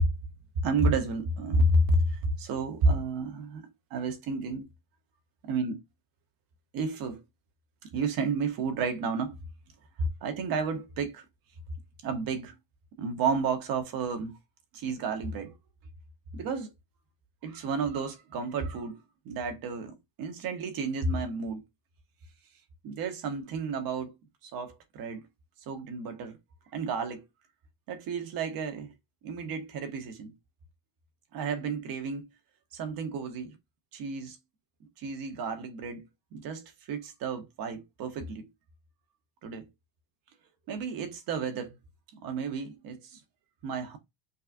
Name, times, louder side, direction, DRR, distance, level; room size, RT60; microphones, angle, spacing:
voice 1, 0.6-4.7 5.5-5.8 6.7-7.2 7.8-9.3 10.2-11.2 12.0-12.5 13.0-14.3 14.7-15.5 16.3-16.7 17.4-21.6 22.8-24.1 24.4-25.2 25.7-26.4 26.7-27.2 27.9-28.9 29.2-30.3 31.3-32.3 32.7-33.6 33.9-34.4 35.0-36.0 36.3-38.5 39.4-39.7 40.7-41.8 42.2-43.2 43.6-44.0, right 3 dB, 50° right, 1.0 m, -31 dB
5.3 x 2.4 x 2.5 m
cardioid pair, 140°, 44 cm